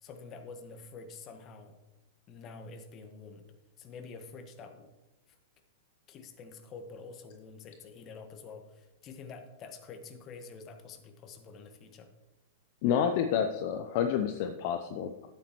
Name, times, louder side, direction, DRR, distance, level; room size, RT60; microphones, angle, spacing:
voice 1, 0.0-1.7 2.3-3.4 3.8-4.9 6.1-12.1, left 4 dB, 35° left, 6 dB, 1.5 m, -47 dB
voice 2, 12.8-15.3, left 8 dB, 50° left, 7 dB, 0.7 m, -29 dB
12.5 x 8.8 x 3.1 m, 1.0 s
figure-of-eight pair, 100°, 0 cm